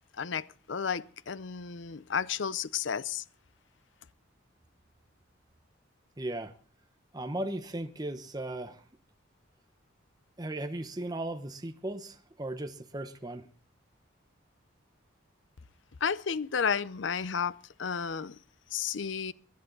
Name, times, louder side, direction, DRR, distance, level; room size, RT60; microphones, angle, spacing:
voice 1, 0.2-3.2 16.0-18.4 18.7-19.3, left 6 dB, 65° left, 0.6 m, -32 dB
voice 2, 6.2-6.5 7.1-8.8 10.4-13.5, right 1 dB, 20° right, 0.9 m, -36 dB
22.5 x 10.5 x 3.9 m
head